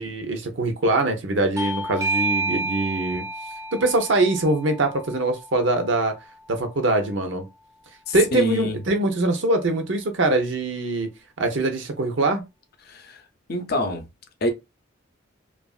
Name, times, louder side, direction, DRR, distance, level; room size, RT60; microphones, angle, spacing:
voice 1, 0.0-3.2 3.7-6.1 6.5-7.4 8.1-11.1 11.4-12.4, right 2 dB, 65° right, 0.7 m, -23 dB
Bell / Doorbell, 1.6-6.7, right 2 dB, 15° right, 0.4 m, -30 dB
voice 2, 8.1-8.8 12.9-13.2 13.5-14.0 14.4-14.5, left 1 dB, 50° left, 0.6 m, -25 dB
2.8 x 2.5 x 2.4 m
head